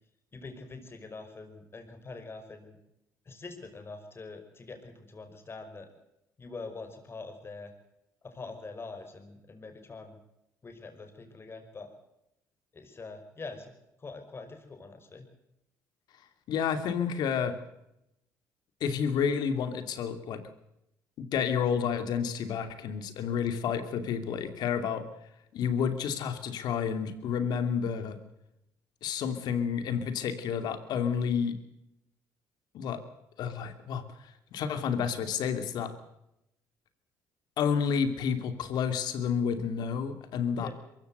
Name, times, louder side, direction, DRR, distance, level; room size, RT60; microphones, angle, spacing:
voice 1, 0.3-2.8 3.3-5.9 6.4-7.7 8.2-10.2 10.6-11.9 12.7-13.7 14.0-15.3 40.5-40.7, left 3 dB, 35° left, 6 dB, 5.6 m, -44 dB
voice 2, 16.5-17.6 18.8-20.4 21.2-25.0 25.5-28.2 29.0-31.6 32.7-33.0 33.4-35.9 37.6-40.7, left 7 dB, 70° left, 9 dB, 2.7 m, -30 dB
23.0 x 15.0 x 8.0 m, 0.84 s
supercardioid pair, 75°, 7 cm